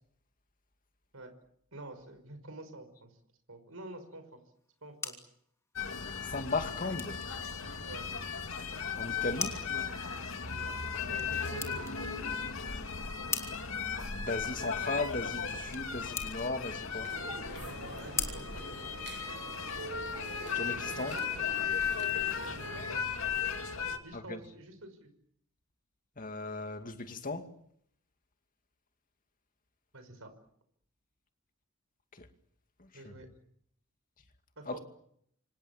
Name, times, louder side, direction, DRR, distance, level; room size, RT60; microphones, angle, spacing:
voice 1, 1.7-3.2 3.5-4.4 4.8-5.2 7.9-8.1 10.5-11.8 17.6-18.6 22.4-23.0 24.0-25.1 29.9-30.3 32.9-33.3 34.6-34.8, right 1 dB, 70° right, 5.8 m, -48 dB
sound 1, 4.6-19.5, left 4 dB, 15° left, 2.9 m, -44 dB
sound 2, 5.8-24.0, left 6 dB, 65° left, 2.5 m, -36 dB
voice 2, 6.2-7.2 9.0-9.6 14.1-17.1 20.5-21.2 24.1-24.4 26.2-27.5 32.1-32.3 32.8-33.2 34.7-34.8, left 3 dB, 40° left, 2.3 m, -37 dB
sound 3, 17.0-22.9, right 3 dB, 50° right, 1.4 m, -46 dB
28.0 x 25.5 x 7.3 m
head